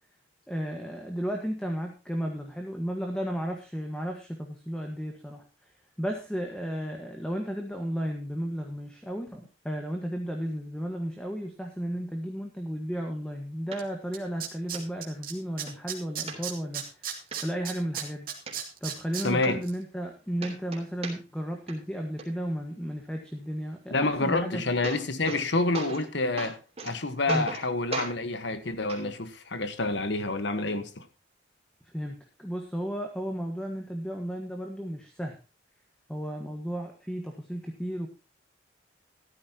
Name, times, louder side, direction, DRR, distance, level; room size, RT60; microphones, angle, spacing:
voice 1, 0.5-5.4 6.0-17.1 17.4-18.3 18.8-24.6 27.3-27.5 31.9-35.4 36.1-38.1, equal, 5° left, 1.4 m, -34 dB
sound 1, 13.7-13.8 14.3-14.4 14.7-14.8 15.3-15.8 16.3-16.8 17.3-17.4 17.8-18.5 19.1-19.2 19.4-20.1 20.4-21.4 21.7-22.2 24.3-24.4 24.6-25.4 25.7-26.1 26.4-26.9 27.3-27.6 27.9-28.1 28.9-29.0 29.9-30.0, right 4 dB, 30° right, 3.7 m, -37 dB
Tools, 13.8-13.9 14.1-15.3 15.6-19.2 19.6-19.7, right 10 dB, 45° right, 2.5 m, -34 dB
voice 2, 19.2-19.6 23.9-26.6 26.8-31.1, left 2 dB, 60° left, 1.3 m, -28 dB
14.5 x 13.0 x 2.9 m
head